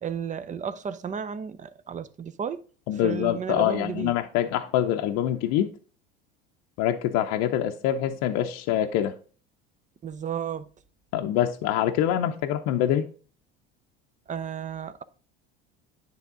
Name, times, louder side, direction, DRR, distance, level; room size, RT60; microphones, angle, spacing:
voice 1, 0.0-2.6 3.0-4.2 10.0-10.7 14.3-15.0, right 7 dB, 25° right, 0.6 m, -33 dB
voice 2, 2.9-5.7 6.8-9.1 11.1-13.1, left 11 dB, 60° left, 0.6 m, -25 dB
9.9 x 3.5 x 3.7 m
hypercardioid pair, 80°, 29 cm